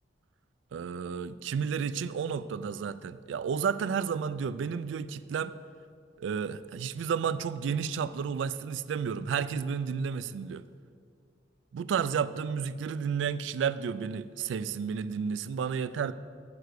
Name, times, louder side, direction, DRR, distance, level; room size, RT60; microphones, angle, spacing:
voice 1, 0.7-5.5 6.2-10.6 11.7-16.1, right 6 dB, 85° right, 14 dB, 0.3 m, -32 dB
7.9 x 4.7 x 6.5 m, 2.2 s
head